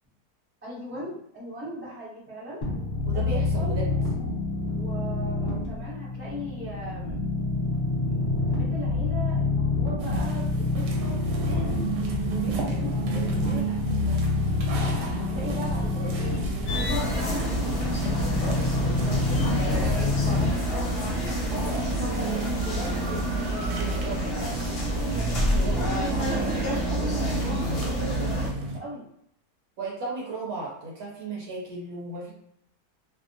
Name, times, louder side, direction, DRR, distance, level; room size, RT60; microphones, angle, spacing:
voice 1, 0.6-2.6 3.1-3.8 4.6-7.2 8.1-11.8 12.3-14.2 14.7-18.5 19.0-20.9 21.5-25.4 26.1-29.0, equal, 10° right, -8 dB, 0.5 m, -39 dB
sound 1, 2.6-20.5, left 3 dB, 35° left, 1.1 m, -27 dB
voice 2, 3.1-3.9 23.8-24.2 25.5-27.1 29.8-32.3, right 3 dB, 65° right, -3 dB, 1.2 m, -36 dB
sound 2, 10.0-28.8, right 3 dB, 85° right, 1.2 m, -34 dB
sound 3, 16.7-28.5, equal, 65° left, 0.6 m, -28 dB
2.7 x 2.1 x 2.6 m, 0.71 s
omnidirectional pair, 1.7 m